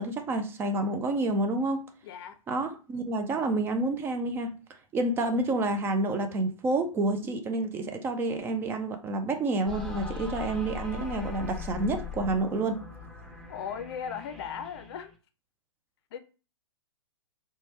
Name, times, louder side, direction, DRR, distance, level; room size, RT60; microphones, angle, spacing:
voice 1, 0.0-1.9 2.5-4.5 4.9-12.8, right 2 dB, 15° right, 0.3 m, -29 dB
voice 2, 2.0-2.4 13.5-15.1 16.1-16.2, left 8 dB, 50° left, 0.5 m, -37 dB
sound 1, 9.7-15.1, left 6 dB, 5° left, 0.9 m, -40 dB
3.1 x 2.2 x 4.1 m
hypercardioid pair, 120°, 17 cm